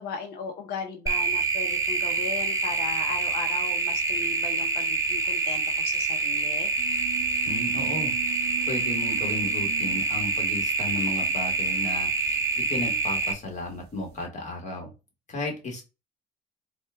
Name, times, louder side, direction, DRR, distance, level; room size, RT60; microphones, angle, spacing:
voice 1, 0.0-6.7, left 5 dB, 75° left, 5 dB, 0.7 m, -37 dB
sound 1, 1.1-13.3, right 3 dB, 20° right, 0.7 m, -26 dB
sound 2, 6.8-14.0, right 17 dB, 75° right, 0.6 m, -42 dB
voice 2, 7.4-8.1 8.7-14.9 15.3-15.8, left 2 dB, 45° left, 2 dB, 1.6 m, -34 dB
4.3 x 2.4 x 3.4 m, 0.28 s
cardioid pair, 110°, 17 cm